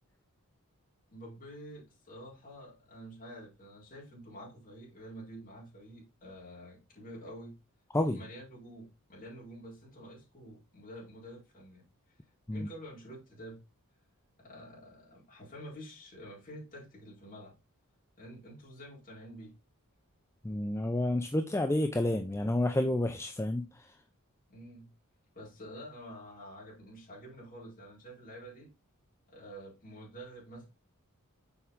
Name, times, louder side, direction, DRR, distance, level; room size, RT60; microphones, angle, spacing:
voice 1, 1.1-7.6 8.1-11.9 12.5-13.6 14.4-17.5 18.2-19.6 24.5-24.9 25.3-28.7 29.3-30.7, equal, 40° left, 4.2 m, -48 dB
voice 2, 20.4-24.0, left 1 dB, 10° left, 0.5 m, -30 dB
7.1 x 4.8 x 3.7 m
head